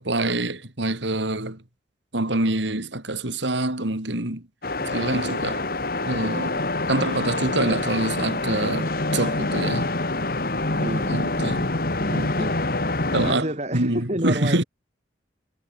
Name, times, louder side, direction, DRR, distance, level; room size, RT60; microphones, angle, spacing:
voice 1, 0.0-1.6 2.1-4.4 4.9-5.7 6.0-6.6 6.9-9.9 11.1-11.6 13.1-14.6, right 2 dB, 70° right, 3.2 m, -25 dB
sound 1, 4.6-13.3, left 2 dB, 50° left, 1.9 m, -26 dB
voice 2, 10.8-11.7 12.1-12.6 13.1-14.6, right 1 dB, 35° right, 5.9 m, -31 dB
head